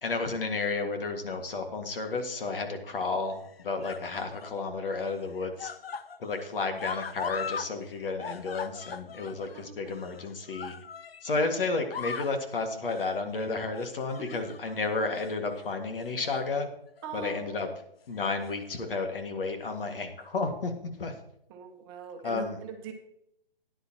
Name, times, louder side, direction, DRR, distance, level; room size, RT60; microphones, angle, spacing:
voice 1, 0.0-5.7 6.2-10.8 11.2-16.7 17.1-17.7 18.1-21.2 22.2-22.6, left 3 dB, 65° left, 5 dB, 1.9 m, -32 dB
sound 1, 1.8-2.4 3.3-4.6 4.9-7.7 8.0-11.4 11.8-12.4 12.8-13.1 13.7-14.8 15.1-15.3 16.0-16.5 16.9-17.0 18.1-18.8 19.7-19.8, left 6 dB, 90° left, 0.7 m, -40 dB
voice 2, 9.5-10.0 14.2-14.3 17.0-17.6 21.5-22.9, right 6 dB, 25° right, 4 dB, 1.1 m, -41 dB
13.5 x 10.0 x 2.9 m, 0.76 s
hypercardioid pair, 150°, 29 cm